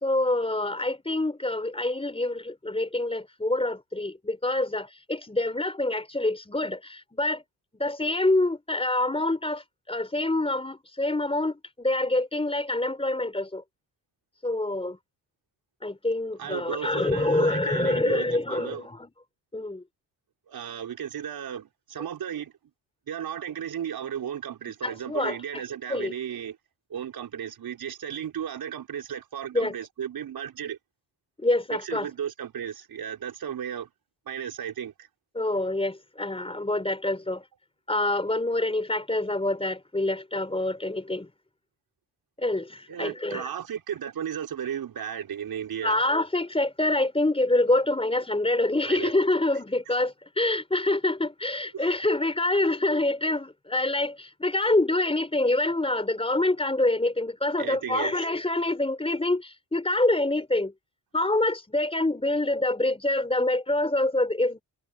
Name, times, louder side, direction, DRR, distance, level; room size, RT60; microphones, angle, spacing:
voice 1, 0.0-7.4 7.8-13.6 14.4-15.0 15.8-19.1 19.5-19.8 24.8-25.6 25.9-26.1 29.5-29.8 31.4-32.1 35.3-37.4 37.9-41.3 42.4-43.5 45.8-60.7 61.1-64.6, left 2 dB, 15° left, 4.4 m, -26 dB
voice 2, 16.4-18.8 20.5-22.5 23.1-26.6 26.9-30.8 31.7-33.9 34.3-34.9 42.9-46.0 48.9-49.1 49.9-50.0 51.7-52.0 57.6-58.3, right 9 dB, 65° right, 5.2 m, -35 dB
cardioid pair, 80°, 39 cm